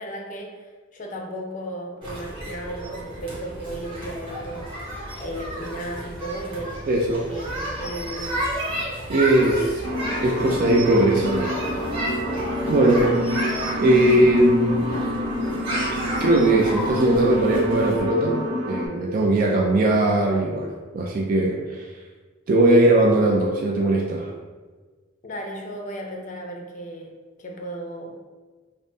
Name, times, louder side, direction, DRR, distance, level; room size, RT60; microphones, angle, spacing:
voice 1, 0.0-4.9 5.2-6.8 7.3-8.5 25.2-28.2, right 1 dB, 40° left, 1 dB, 0.5 m, -35 dB
sound 1, 2.0-18.0, right 1 dB, 25° right, 1.0 m, -32 dB
voice 2, 6.9-7.3 9.1-9.8 10.2-11.5 12.7-13.2 13.8-14.9 16.2-18.4 18.6-21.9 22.5-24.3, right 1 dB, 45° right, -1 dB, 0.3 m, -19 dB
sound 2, 9.8-18.9, left 1 dB, 90° right, 0.8 m, -27 dB
5.2 x 2.0 x 2.6 m, 1.4 s
head